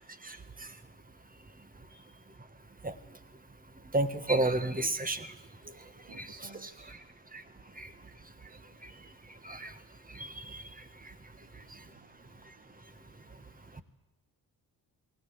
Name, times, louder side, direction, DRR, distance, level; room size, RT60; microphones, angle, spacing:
voice 1, 0.2-0.7 2.8-2.9 3.9-5.3 6.1-7.0 7.3-7.4 7.8-7.9 8.8-8.9 9.4-9.7 10.1-10.6, right 2 dB, 20° right, 10 dB, 1.6 m, -32 dB
voice 2, 6.1-6.9 8.7-8.8 11.4-13.1 13.4-13.8, right 4 dB, 75° right, 4 dB, 2.9 m, -58 dB
19.5 x 18.5 x 7.6 m, 1.0 s
cardioid pair, 80°, 40 cm